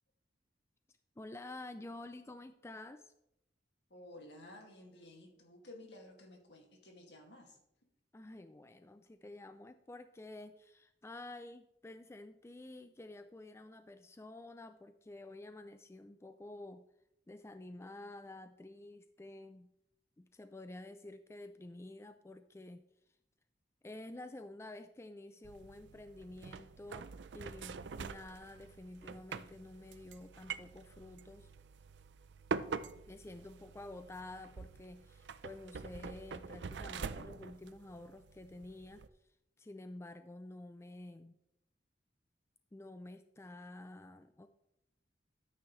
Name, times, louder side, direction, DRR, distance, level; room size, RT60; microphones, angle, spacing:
voice 1, 1.2-3.1 8.1-16.8 17.3-19.7 20.2-22.8 23.8-27.1 27.3-31.5 33.1-39.0 39.6-41.4 42.7-44.5, left 2 dB, 15° left, 10 dB, 0.4 m, -50 dB
voice 2, 3.9-7.6 32.6-33.0, left 1 dB, 70° left, 2 dB, 2.2 m, -54 dB
sound 1, 25.4-39.1, right 5 dB, 75° right, 0.5 m, -45 dB
13.0 x 8.7 x 3.2 m, 0.81 s
head